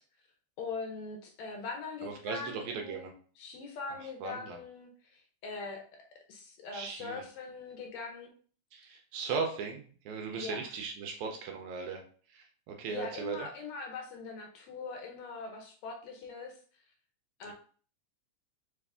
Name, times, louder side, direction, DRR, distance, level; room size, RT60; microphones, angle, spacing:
voice 1, 0.6-5.8 6.3-8.3 10.3-10.7 12.9-16.6 17.4-17.5, left 4 dB, 75° left, 2 dB, 1.8 m, -42 dB
voice 2, 2.0-3.1 4.0-4.6 6.7-7.3 8.7-12.0 12.3-13.5, right 5 dB, 80° right, 3 dB, 1.9 m, -38 dB
4.7 x 2.5 x 3.4 m, 0.43 s
omnidirectional pair, 3.6 m